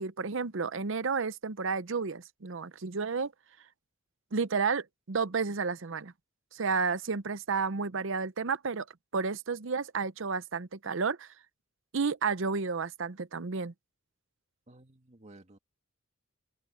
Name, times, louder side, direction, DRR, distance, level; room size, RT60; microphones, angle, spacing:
voice 1, 0.0-3.3 4.3-6.1 6.5-8.9 9.1-11.3 11.9-13.7, right 5 dB, 65° right, 0.7 m, -31 dB
voice 2, 14.7-15.6, right 2 dB, 35° right, 1.9 m, -54 dB
head